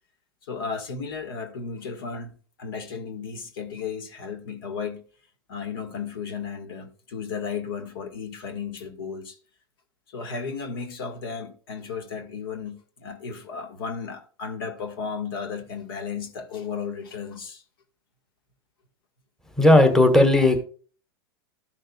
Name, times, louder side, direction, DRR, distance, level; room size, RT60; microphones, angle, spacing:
voice 1, 0.4-5.0 5.5-9.4 10.1-17.6, left 5 dB, 65° left, 1.7 m, -34 dB
voice 2, 19.6-20.6, left 1 dB, 5° left, 1.5 m, -15 dB
14.0 x 6.4 x 2.4 m
hypercardioid pair, 95°, 13 cm